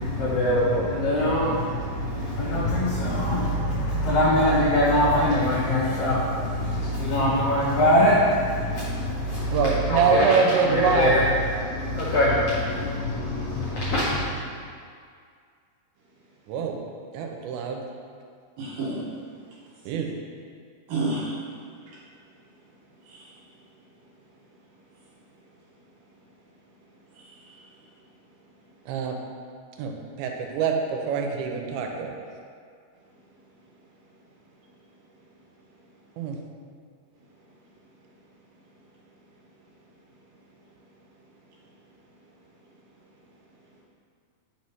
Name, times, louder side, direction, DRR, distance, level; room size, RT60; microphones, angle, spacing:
voice 1, 0.0-14.2, left 1 dB, 85° left, -7 dB, 1.6 m, -23 dB
voice 2, 9.5-11.1 16.5-16.8 17.1-17.8 19.9-20.1 28.9-29.2 29.8-29.9 30.2-32.1 36.2-36.4, right 5 dB, 85° right, 2 dB, 2.5 m, -24 dB
voice 3, 18.6-19.0 20.9-21.3 21.9-22.0 23.0-23.3 27.2-27.6, right 2 dB, 70° right, -5 dB, 2.7 m, -31 dB
5.7 x 3.1 x 5.5 m, 2.2 s
omnidirectional pair, 4.4 m